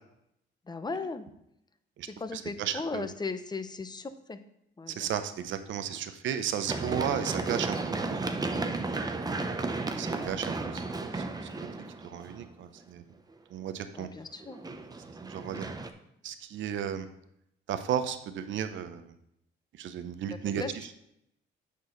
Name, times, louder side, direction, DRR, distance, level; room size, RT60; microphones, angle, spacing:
voice 1, 0.6-1.3 2.0-4.4 4.8-5.1 13.8-14.6 20.3-20.7, left 4 dB, 20° left, 10 dB, 0.7 m, -37 dB
voice 2, 2.0-3.1 4.9-8.8 10.0-10.8 11.1-11.5 12.0-13.1 13.5-14.1 15.2-15.7 16.2-17.1 17.7-19.1 19.8-20.6, right 9 dB, 75° right, 10 dB, 0.7 m, -34 dB
Run, 6.7-12.5 14.4-15.9, right 3 dB, 20° right, 0.7 m, -34 dB
8.3 x 6.2 x 3.8 m, 0.78 s
cardioid pair, 90°, 20 cm